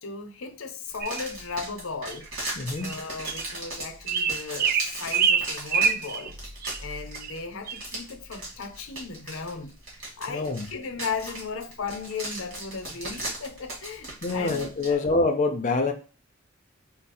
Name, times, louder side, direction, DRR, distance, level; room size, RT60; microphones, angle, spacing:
voice 1, 0.0-2.3 2.8-6.4 6.8-9.7 10.2-15.0, left 5 dB, 85° left, 0.6 m, -36 dB
sound 1, 0.9-14.9, right 1 dB, 65° right, 2.1 m, -38 dB
sound 2, 1.0-1.2 2.1-2.2 2.8-3.0 3.3-3.4 4.1-6.3 6.6-6.8 7.1-7.3 7.7-7.8, right 7 dB, 45° right, 0.3 m, -25 dB
voice 2, 2.6-3.0 10.3-10.7 14.2-15.9, left 3 dB, 35° left, 0.4 m, -25 dB
4.6 x 2.0 x 4.1 m
head